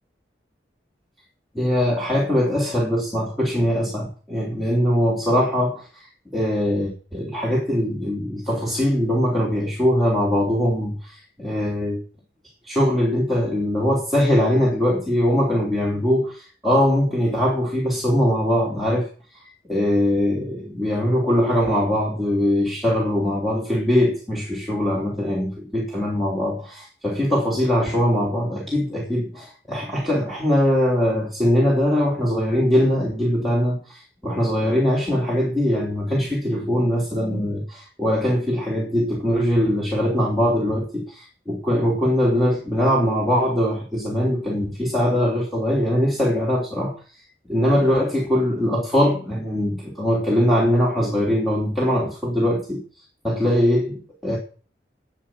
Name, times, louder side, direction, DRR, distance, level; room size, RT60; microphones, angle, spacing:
voice 1, 1.5-6.1 6.3-12.0 12.6-19.1 19.4-46.9 47.4-52.8 53.2-54.4, equal, ahead, -6 dB, 3.1 m, -21 dB
13.0 x 8.6 x 6.2 m, 0.39 s
head